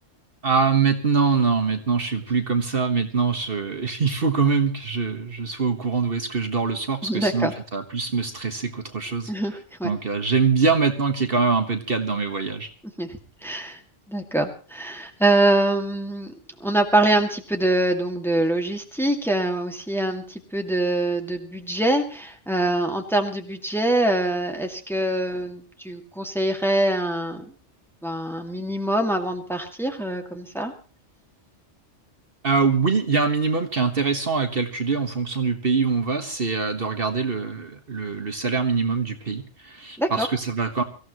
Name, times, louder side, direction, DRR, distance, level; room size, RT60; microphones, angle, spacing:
voice 1, 0.4-9.3 9.8-12.7 32.4-40.8, right 5 dB, 50° right, 6 dB, 1.6 m, -23 dB
voice 2, 7.0-7.5 9.3-9.9 13.0-13.8 14.1-16.3 16.6-27.5 28.0-30.7 40.0-40.3, right 1 dB, ahead, 3 dB, 2.1 m, -24 dB
24.0 x 15.0 x 3.0 m, 0.38 s
omnidirectional pair, 1.2 m